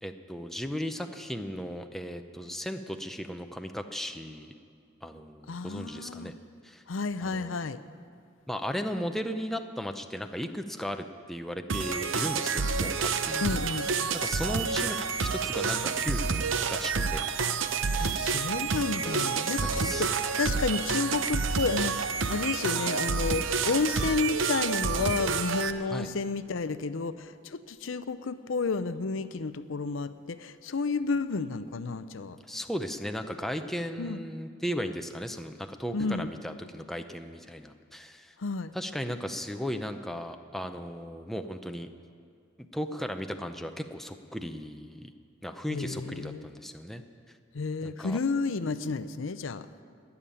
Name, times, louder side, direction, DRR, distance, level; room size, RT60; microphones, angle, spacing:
voice 1, 0.0-4.5 5.0-6.3 6.6-6.8 7.2-7.5 8.5-13.4 14.1-17.2 17.9-18.4 19.0-19.2 19.6-20.1 25.9-26.1 32.5-38.3 38.7-41.9 42.7-45.1 45.4-47.0 47.8-48.2, equal, ahead, 6 dB, 0.6 m, -36 dB
voice 2, 5.5-6.3 6.9-7.8 13.4-13.9 18.0-32.4 34.0-34.2 35.9-36.3 38.4-38.7 45.7-46.4 47.5-49.7, left 4 dB, 70° left, 13 dB, 0.6 m, -31 dB
sound 1, 11.7-25.7, right 5 dB, 65° right, 0.7 m, -29 dB
19.5 x 7.2 x 9.8 m, 2.3 s
head